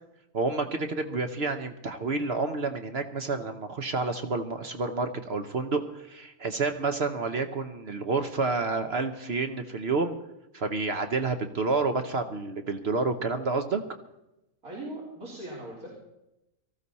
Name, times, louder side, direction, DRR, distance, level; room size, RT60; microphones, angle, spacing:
voice 1, 0.3-10.1 10.5-13.8, right 3 dB, 50° right, 7 dB, 1.0 m, -29 dB
voice 2, 14.6-15.9, right 1 dB, 85° right, -4 dB, 4.4 m, -39 dB
18.5 x 14.5 x 4.2 m, 0.90 s
omnidirectional pair, 1.5 m